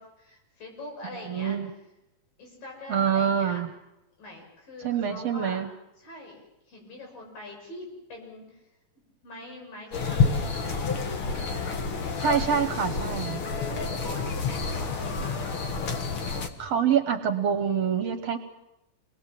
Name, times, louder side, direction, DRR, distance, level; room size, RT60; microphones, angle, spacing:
voice 1, 0.0-1.6 2.4-3.6 4.2-5.6 6.0-6.4 6.7-8.5 9.2-11.2 13.6-15.6, left 1 dB, 90° left, 1 dB, 8.1 m, -43 dB
voice 2, 1.2-1.7 2.9-3.7 4.8-5.7 12.2-13.4 16.6-18.4, right 8 dB, 60° right, 7 dB, 1.8 m, -26 dB
sound 1, 9.9-16.5, left 4 dB, 50° left, 2.1 m, -29 dB
27.5 x 20.5 x 7.6 m, 0.95 s
omnidirectional pair, 3.9 m